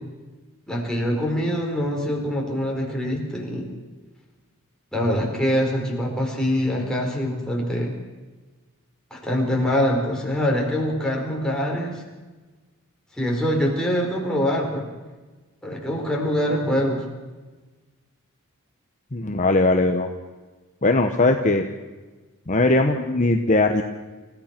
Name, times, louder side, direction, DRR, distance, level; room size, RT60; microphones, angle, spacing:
voice 1, 0.7-3.7 4.9-7.9 9.1-12.0 13.2-14.9 15.6-17.0, equal, 5° left, -2 dB, 4.4 m, -24 dB
voice 2, 19.1-20.1 20.8-21.7 22.5-23.8, left 2 dB, 35° left, 5 dB, 1.1 m, -19 dB
28.5 x 15.0 x 6.0 m, 1.3 s
head